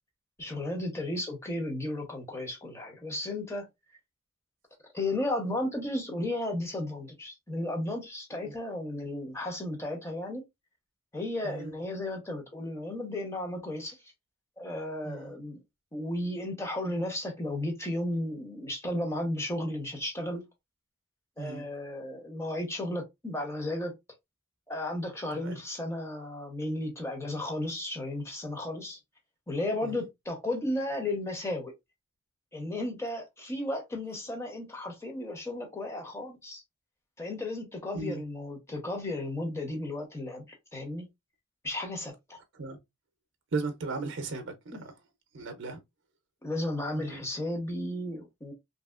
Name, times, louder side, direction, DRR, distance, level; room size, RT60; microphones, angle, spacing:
voice 1, 0.4-3.7 4.9-10.4 11.1-14.0 14.6-15.6 15.9-20.4 21.4-23.9 24.7-29.0 29.5-31.7 32.5-36.6 37.2-40.4 40.7-41.1 41.6-42.4 44.7-44.8 46.4-48.5, left 1 dB, 15° left, 0.8 m, -34 dB
voice 2, 43.5-44.9 45.3-45.8 46.9-47.3, right 3 dB, 55° right, 0.6 m, -36 dB
2.9 x 2.7 x 2.3 m
head